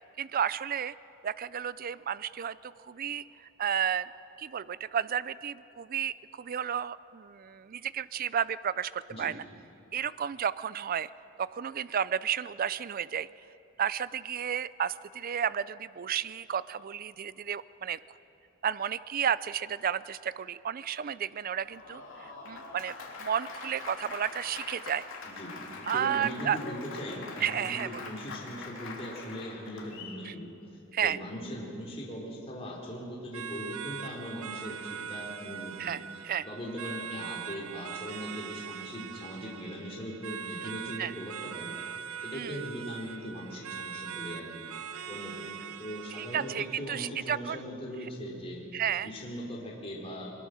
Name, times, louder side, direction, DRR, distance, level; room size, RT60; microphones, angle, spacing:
voice 1, 0.2-0.9 1.2-4.1 4.4-9.4 9.9-11.1 11.4-13.3 13.8-18.0 18.6-25.0 25.9-26.6 27.4-28.1 30.2-30.3 30.9-31.2 35.8-36.0 36.2-36.5 40.6-40.7 41.0-41.1 42.3-42.6 46.2-47.6 48.7-49.1, right 8 dB, 40° right, 17 dB, 0.4 m, -32 dB
Applause, 21.5-30.2, left 4 dB, 60° left, 3.1 m, -43 dB
voice 2, 25.2-30.5 31.0-36.0 36.5-41.8 42.0-44.7 45.1-45.5 45.8-48.6 49.0-50.3, equal, 25° left, -3 dB, 3.5 m, -40 dB
sound 1, 33.3-46.9, right 8 dB, 80° right, 0.7 m, -41 dB
22.0 x 21.5 x 6.5 m, 2.9 s
head